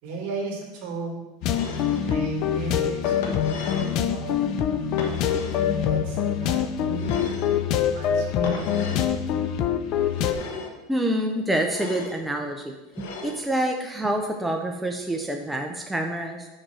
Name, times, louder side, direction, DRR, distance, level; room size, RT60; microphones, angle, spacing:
voice 1, 0.0-1.2 1.9-4.8 5.7-8.9, right 3 dB, 60° right, 1 dB, 2.3 m, -36 dB
sound 1, 1.4-2.1 3.1-4.0 5.0-5.7 6.9-7.6 8.4-9.1 10.1-10.8 11.6-12.2 12.9-13.5, left 4 dB, 70° left, 1.3 m, -36 dB
sound 2, 1.4-10.3, left 8 dB, 50° left, 0.5 m, -25 dB
voice 2, 10.9-12.7 13.2-16.5, right 1 dB, 5° right, 2 dB, 0.6 m, -27 dB
6.4 x 4.5 x 6.2 m, 1.1 s
supercardioid pair, 130°, 0 cm